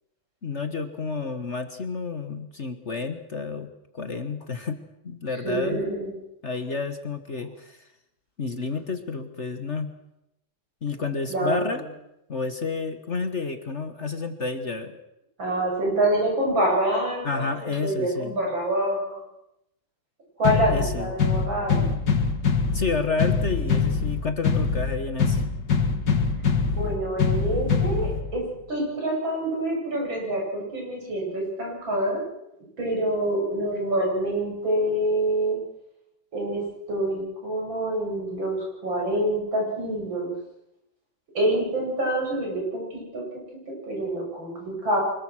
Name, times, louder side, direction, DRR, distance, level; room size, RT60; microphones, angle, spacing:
voice 1, 0.4-4.8 5.0-5.8 6.4-7.9 8.4-9.9 10.8-11.8 12.3-15.0 17.2-18.3 20.7-21.1 22.7-25.4, left 4 dB, 40° left, 8 dB, 1.6 m, -30 dB
voice 2, 5.4-6.1 11.3-11.7 15.4-19.2 20.4-22.0 26.7-32.2 32.8-35.6 36.3-40.4 41.3-43.2 43.7-45.0, right 1 dB, 80° right, -2 dB, 8.8 m, -26 dB
sound 1, 20.4-28.4, left 5 dB, 65° left, 2.7 m, -24 dB
24.5 x 21.5 x 6.4 m, 0.84 s
omnidirectional pair, 2.1 m